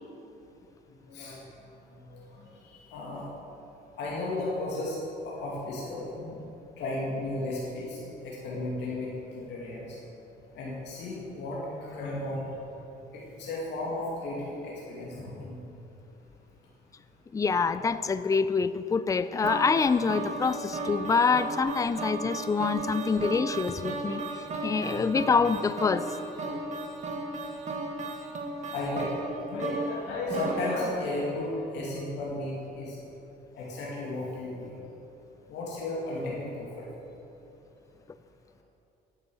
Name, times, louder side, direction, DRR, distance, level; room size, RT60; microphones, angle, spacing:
voice 1, 1.1-1.4 2.1-3.3 4.0-5.0 5.2-6.4 6.8-8.0 8.2-9.9 10.5-12.8 13.1-15.6 17.8-17.9 24.8-25.0 28.7-29.1 29.4-33.0 33.5-34.7 35.5-36.8, left 2 dB, 70° left, -5 dB, 2.3 m, -34 dB
voice 2, 17.3-26.1, left 5 dB, 20° left, 14 dB, 0.4 m, -26 dB
sound 1, 19.4-31.6, right 2 dB, 40° right, 1.7 m, -35 dB
9.7 x 8.2 x 6.9 m, 2.9 s
supercardioid pair, 85°, 18 cm